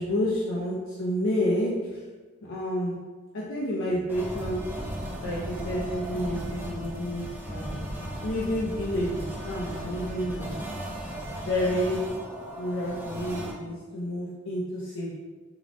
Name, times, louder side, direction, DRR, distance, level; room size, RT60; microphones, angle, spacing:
voice 1, 0.0-2.0 2.4-3.0 3.3-4.6 5.2-7.9 8.2-10.6 11.4-12.0 12.6-15.1, equal, 75° left, -5 dB, 0.5 m, -29 dB
sound 1, 4.1-13.5, right 1 dB, 10° right, 0.4 m, -36 dB
4.6 x 2.0 x 2.5 m, 1.4 s
head